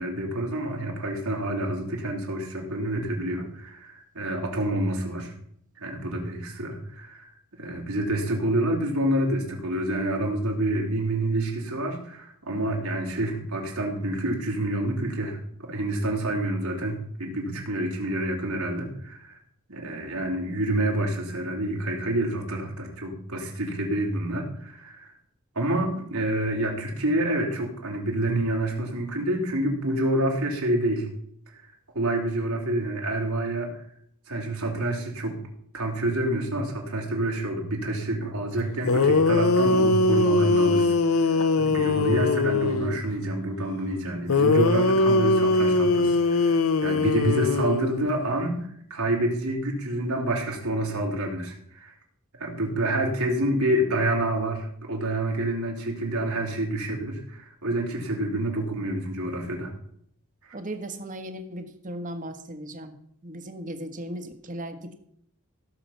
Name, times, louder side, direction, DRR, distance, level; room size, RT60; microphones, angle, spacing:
voice 1, 0.0-5.3 5.8-19.4 19.7-25.1 25.5-31.1 31.5-31.7 31.9-33.7 34.3-35.4 35.7-51.9 52.4-59.7 60.5-60.6, right 1 dB, 90° right, -1 dB, 3.5 m, -28 dB
sound 1, 38.6-38.7 38.9-43.0 44.3-48.3, left 3 dB, 75° left, 0.8 m, -21 dB
voice 2, 60.5-63.0 63.2-65.0, right 1 dB, 40° right, 8 dB, 1.4 m, -37 dB
16.0 x 6.9 x 5.8 m, 0.68 s
head